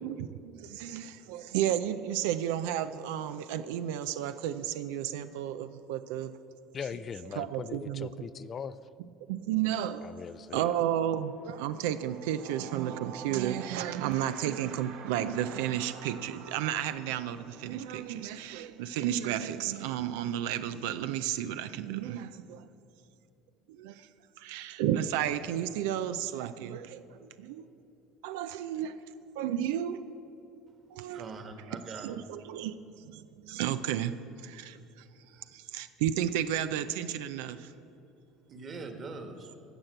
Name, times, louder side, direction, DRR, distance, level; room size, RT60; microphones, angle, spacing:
voice 1, 0.0-6.3 7.4-8.1 9.3-10.1 10.5-22.7 23.7-24.1 24.4-27.6 28.2-28.9 29.4-30.0 30.9-31.3 32.0-34.1 34.4-34.8 35.5-37.7, right 11 dB, 85° right, 11 dB, 0.4 m, -32 dB
voice 2, 6.7-8.8 10.0-10.7 14.2-14.3, left 7 dB, 35° left, 15 dB, 0.3 m, -40 dB
sound 1, 9.6-9.8 10.1-20.6, right 7 dB, 70° right, 1.1 m, -49 dB
voice 3, 31.1-32.2 35.3-35.4 38.5-39.5, right 3 dB, 35° right, 6 dB, 1.5 m, -42 dB
15.5 x 5.9 x 7.8 m, 2.8 s
supercardioid pair, 110°, 0 cm